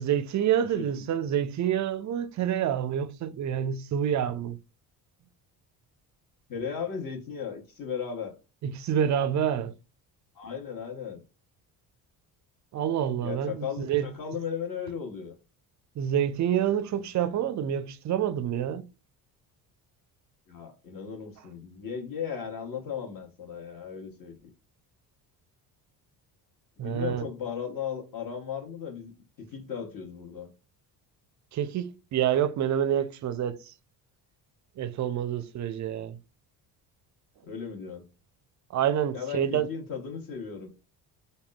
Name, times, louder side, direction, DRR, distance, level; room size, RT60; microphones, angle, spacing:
voice 1, 0.0-4.6 8.6-9.7 12.7-14.1 16.0-18.9 26.8-27.2 31.5-33.7 34.8-36.2 38.7-39.7, right 9 dB, 40° right, 0.4 m, -27 dB
voice 2, 0.6-1.1 6.5-8.4 10.3-11.2 13.2-15.4 20.5-24.5 26.8-30.5 37.4-38.1 39.1-40.7, left 7 dB, 45° left, 1.1 m, -36 dB
3.5 x 2.1 x 2.3 m
supercardioid pair, 65°, 47 cm